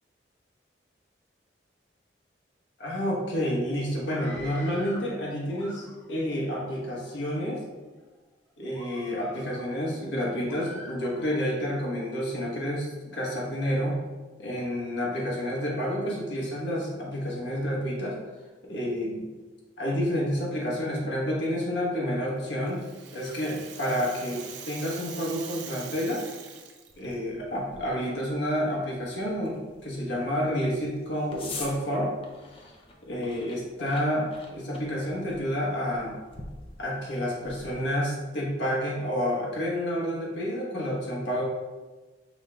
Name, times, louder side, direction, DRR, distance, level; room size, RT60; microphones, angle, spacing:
voice 1, 2.8-7.6 8.6-14.0 14.4-18.2 18.7-19.3 19.8-22.9 23.1-26.2 27.0-32.1 33.1-36.2 36.8-41.4, equal, 70° left, -3 dB, 1.1 m, -29 dB
Screaming, 4.0-5.1 5.5-6.2 6.9-7.5 8.0-8.2 8.7-9.7 10.5-11.5, equal, 10° left, 0.8 m, -46 dB
Rattle (instrument), 22.4-27.1, right 7 dB, 70° right, 0.5 m, -43 dB
sound 1, 26.9-37.9, left 3 dB, 30° left, 0.4 m, -47 dB
5.2 x 2.2 x 3.8 m, 1.3 s
head